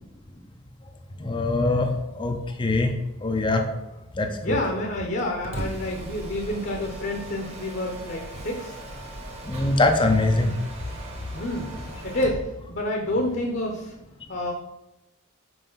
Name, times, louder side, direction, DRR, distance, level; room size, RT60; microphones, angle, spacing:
voice 1, 1.2-1.9 2.1-2.9 3.2-3.6 4.2-4.5 9.4-10.5, left 2 dB, 20° left, 5 dB, 0.5 m, -22 dB
voice 2, 4.4-8.8 11.3-12.4 12.7-13.9 14.3-14.5, left 1 dB, 45° left, 2 dB, 0.9 m, -28 dB
Mechanisms, 5.2-12.5, right 1 dB, 30° right, 1.2 m, -38 dB
5.5 x 4.9 x 5.6 m, 0.97 s
head